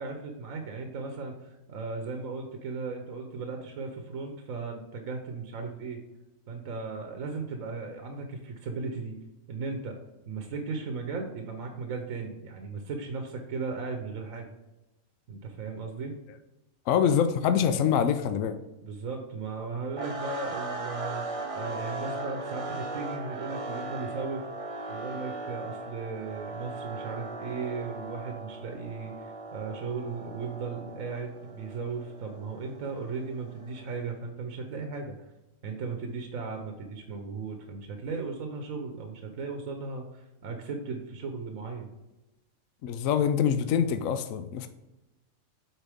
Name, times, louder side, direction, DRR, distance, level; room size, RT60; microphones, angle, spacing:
voice 1, 0.0-6.0 6.5-9.1 9.5-10.0 10.3-14.5 15.3-16.1 18.8-21.2 21.5-24.5 24.9-35.2 35.6-41.9, right 4 dB, 70° right, 4 dB, 1.2 m, -36 dB
voice 2, 16.9-18.5 42.8-44.7, left 8 dB, 70° left, 9 dB, 0.9 m, -25 dB
sound 1, 20.0-34.1, right 2 dB, 30° right, 0.8 m, -38 dB
9.0 x 4.1 x 3.5 m, 1.0 s
omnidirectional pair, 1.5 m